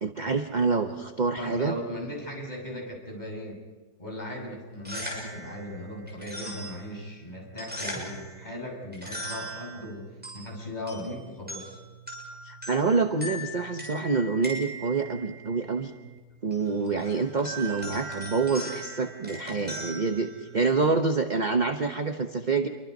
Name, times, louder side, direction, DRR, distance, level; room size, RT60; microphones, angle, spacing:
voice 1, 0.0-1.8 12.4-15.9 16.4-22.7, right 4 dB, 35° right, 6 dB, 0.9 m, -27 dB
voice 2, 1.4-3.6 4.0-11.8, left 1 dB, 25° left, -1 dB, 6.6 m, -38 dB
sound 1, 4.7-20.9, right 1 dB, 5° right, 7.1 m, -40 dB
28.5 x 23.5 x 5.3 m, 1.3 s
omnidirectional pair, 1.9 m